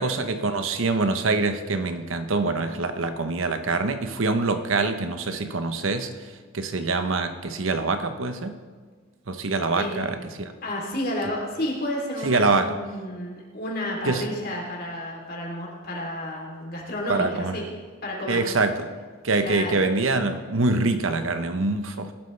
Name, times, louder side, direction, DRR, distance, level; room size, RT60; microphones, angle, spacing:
voice 1, 0.0-6.1 6.5-8.6 9.3-10.5 12.2-12.7 14.1-14.2 17.1-17.5 18.3-18.9 19.2-22.1, right 3 dB, 80° right, 8 dB, 0.9 m, -25 dB
voice 2, 9.7-10.2 10.6-17.6 18.0-18.4 19.4-19.8, left 1 dB, 50° left, -2 dB, 3.1 m, -31 dB
19.0 x 12.0 x 3.3 m, 1.5 s
head